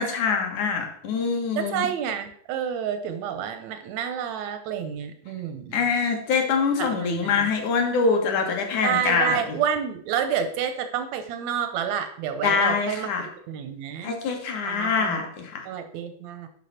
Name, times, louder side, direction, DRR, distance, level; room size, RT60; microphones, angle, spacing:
voice 1, 0.0-1.9 5.7-9.4 12.4-13.3 14.0-15.7, left 5 dB, 65° left, 3 dB, 2.7 m, -24 dB
voice 2, 1.6-5.9 6.8-7.5 8.8-14.1 14.6-15.2 15.6-16.5, right 8 dB, 80° right, 8 dB, 1.6 m, -29 dB
12.0 x 5.7 x 4.3 m, 0.62 s
omnidirectional pair, 4.1 m